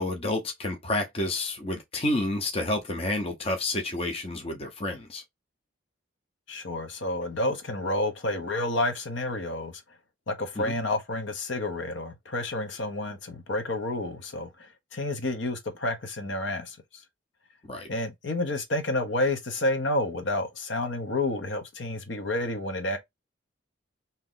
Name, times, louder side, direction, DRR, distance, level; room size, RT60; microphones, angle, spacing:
voice 1, 0.0-5.2 10.6-10.7 17.7-17.9, left 2 dB, 30° left, 0.7 m, -29 dB
voice 2, 6.5-9.7 10.3-16.8 17.9-23.0, left 2 dB, 65° left, 0.9 m, -30 dB
3.1 x 2.8 x 3.8 m
head